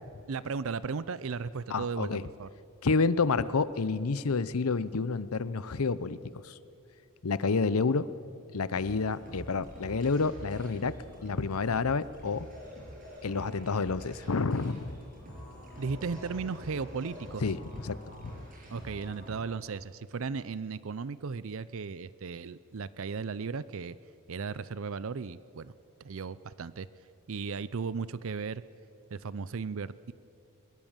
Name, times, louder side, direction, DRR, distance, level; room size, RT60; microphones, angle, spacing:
voice 1, 0.3-2.1 2.4-2.5 15.8-17.5 18.7-24.0 24.3-25.7 26.0-26.9 27.3-28.6 29.1-30.1, right 5 dB, 60° right, 17 dB, 0.5 m, -36 dB
voice 2, 1.7-2.2 2.8-6.2 6.4-6.6 7.2-8.1 8.5-11.0 11.2-12.5 13.2-15.0 17.4-17.6 17.8-18.4, left 4 dB, 75° left, 16 dB, 0.7 m, -29 dB
sound 1, 8.7-19.4, equal, 40° right, 7.0 m, -46 dB
22.5 x 21.0 x 7.4 m, 2.6 s
head